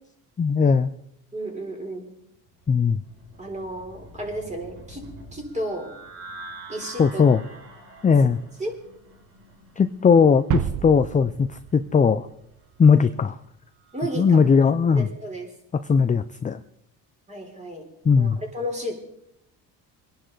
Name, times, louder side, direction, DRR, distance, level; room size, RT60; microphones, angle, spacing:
voice 1, 0.4-0.9 2.7-3.0 7.0-7.4 8.0-8.4 9.8-12.3 12.8-13.4 14.2-15.1 15.9-16.6 18.0-18.4, left 6 dB, 20° left, 10 dB, 0.5 m, -18 dB
voice 2, 1.3-2.1 3.4-5.9 6.7-7.2 8.6-8.8 13.9-14.4 14.9-15.5 17.3-17.9 18.2-18.9, right 1 dB, 15° right, 2 dB, 3.9 m, -33 dB
sound 1, 2.5-14.3, right 2 dB, 70° right, 6.8 m, -47 dB
sound 2, 10.5-12.6, right 10 dB, 50° right, 0.8 m, -30 dB
23.0 x 11.0 x 4.0 m, 0.77 s
cardioid pair, 110°, 41 cm